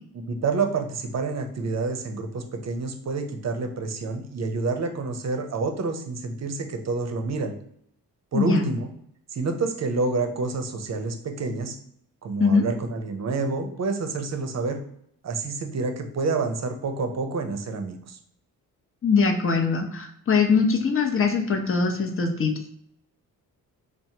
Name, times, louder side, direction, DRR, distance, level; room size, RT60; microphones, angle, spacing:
voice 1, 0.1-7.5 8.3-8.9 9.3-11.8 12.2-14.8 15.2-18.2, right 3 dB, 40° right, 6 dB, 0.6 m, -28 dB
voice 2, 8.3-8.7 12.4-12.6 19.0-22.5, left 5 dB, 30° left, 3 dB, 0.7 m, -22 dB
3.1 x 2.1 x 2.8 m, 0.69 s
hypercardioid pair, 45°, 41 cm